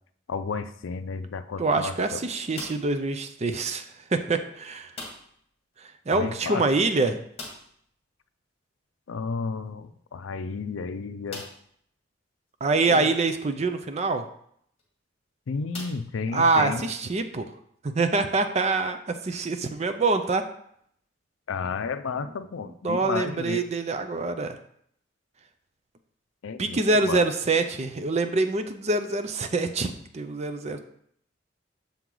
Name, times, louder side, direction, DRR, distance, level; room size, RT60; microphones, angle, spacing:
voice 1, 0.3-2.2 6.1-6.7 9.1-11.5 12.9-13.1 15.5-16.8 21.5-23.6 26.4-27.2, left 5 dB, 80° left, 12 dB, 0.4 m, -32 dB
voice 2, 1.6-3.8 4.1-4.9 6.1-7.2 12.6-14.2 16.3-17.5 17.8-20.4 22.8-24.6 26.6-30.8, right 3 dB, 35° right, 8 dB, 0.5 m, -25 dB
sound 1, 2.5-3.1 4.9-5.5 5.7-5.8 6.2-6.3 7.3-7.9 9.6-9.7 10.4-10.5 11.3-11.8 12.5-12.6 14.6-14.8 15.7-16.6, left 2 dB, 30° left, 1.6 m, -42 dB
6.9 x 4.6 x 3.8 m, 0.67 s
head